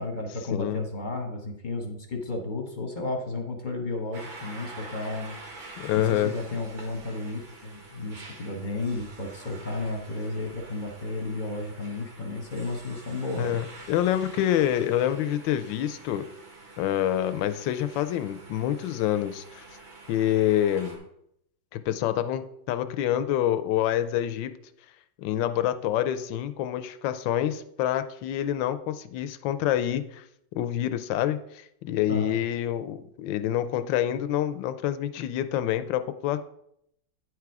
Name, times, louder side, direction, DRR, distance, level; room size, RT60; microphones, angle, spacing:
voice 1, 0.0-5.4 5.9-13.6 32.1-32.4, left 2 dB, 30° left, 2 dB, 1.0 m, -33 dB
voice 2, 0.5-0.8 5.8-6.3 13.4-16.3 16.8-19.6 20.1-21.0 21.7-24.6 25.2-30.2 30.5-36.4, left 11 dB, 75° left, 10 dB, 1.3 m, -27 dB
sound 1, 4.1-21.0, right 3 dB, 80° right, 2.5 m, -47 dB
9.8 x 4.8 x 4.7 m, 0.74 s
omnidirectional pair, 2.1 m